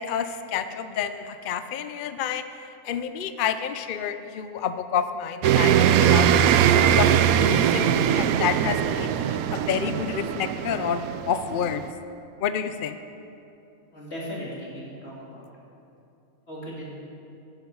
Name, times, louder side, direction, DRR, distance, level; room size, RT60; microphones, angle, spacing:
voice 1, 0.0-6.4 6.9-11.8 12.4-13.0, left 8 dB, 70° left, 10 dB, 0.5 m, -29 dB
sound 1, 5.4-11.9, right 9 dB, 75° right, 1.0 m, -21 dB
voice 2, 13.9-15.5 16.5-16.9, equal, 45° left, -6 dB, 3.6 m, -37 dB
16.0 x 10.5 x 5.5 m, 2.7 s
omnidirectional pair, 1.5 m